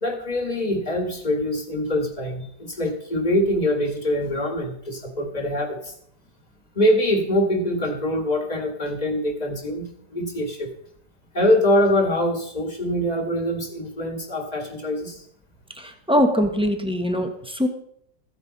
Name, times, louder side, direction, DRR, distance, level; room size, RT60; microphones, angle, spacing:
voice 1, 0.0-5.9 6.7-10.7 11.3-15.2, left 1 dB, 25° left, 4 dB, 1.7 m, -24 dB
voice 2, 15.8-17.7, equal, 5° right, 4 dB, 1.0 m, -22 dB
14.5 x 9.9 x 4.1 m, 0.68 s
omnidirectional pair, 2.0 m